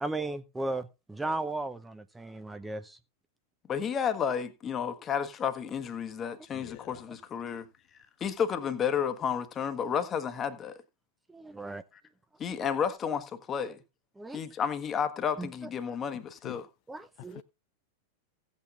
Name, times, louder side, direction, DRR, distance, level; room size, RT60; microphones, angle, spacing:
voice 1, 0.0-3.0 11.3-11.8 13.6-13.7 14.2-14.4 15.4-15.5 16.9-17.4, right 2 dB, 10° right, 0.6 m, -36 dB
voice 2, 3.7-7.7 8.2-10.8 12.4-13.8 14.3-16.7, left 7 dB, 25° left, 1.2 m, -31 dB
voice 3, 6.5-7.0 16.4-16.6 17.3-17.4, left 20 dB, 45° left, 0.4 m, -44 dB
16.5 x 8.4 x 2.4 m
figure-of-eight pair, 90°, 0 cm